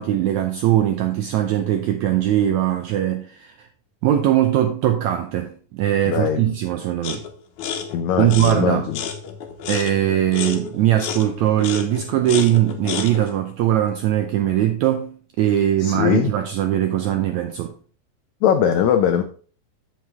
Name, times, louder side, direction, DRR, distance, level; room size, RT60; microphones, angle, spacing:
voice 1, 0.0-3.7 4.0-7.2 8.2-8.9 9.7-17.7, right 12 dB, 80° right, 1.6 m, -20 dB
voice 2, 6.0-6.5 7.9-9.0 15.8-16.3 18.4-19.2, left 9 dB, 90° left, 1.6 m, -20 dB
sound 1, 7.0-7.3 7.6-13.3, left 7 dB, 65° left, 2.2 m, -31 dB
7.9 x 7.7 x 3.6 m
omnidirectional pair, 4.1 m